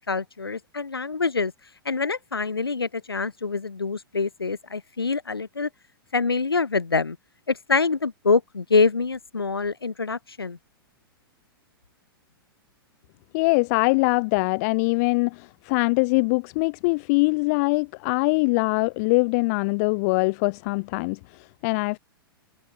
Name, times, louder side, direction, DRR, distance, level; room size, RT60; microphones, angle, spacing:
voice 1, 0.0-1.5 1.8-5.7 6.1-7.2 7.5-10.6, left 4 dB, 75° left, 5.8 m, -25 dB
voice 2, 13.3-22.0, left 28 dB, 40° left, 4.5 m, -23 dB
figure-of-eight pair, 105°, 12 cm